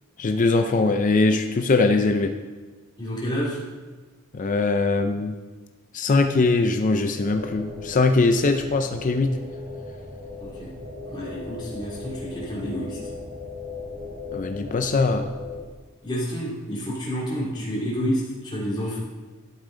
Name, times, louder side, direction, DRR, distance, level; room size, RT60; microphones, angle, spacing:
voice 1, 0.2-2.3 4.3-5.3 5.9-9.4 14.3-15.3, left 3 dB, 40° left, 6 dB, 0.5 m, -21 dB
voice 2, 3.0-3.6 10.4-10.7 11.1-13.0 16.0-19.0, equal, 20° left, -7 dB, 2.6 m, -29 dB
sound 1, 7.1-15.6, left 3 dB, 35° right, 3.6 m, -38 dB
12.0 x 8.3 x 3.8 m, 1.4 s
head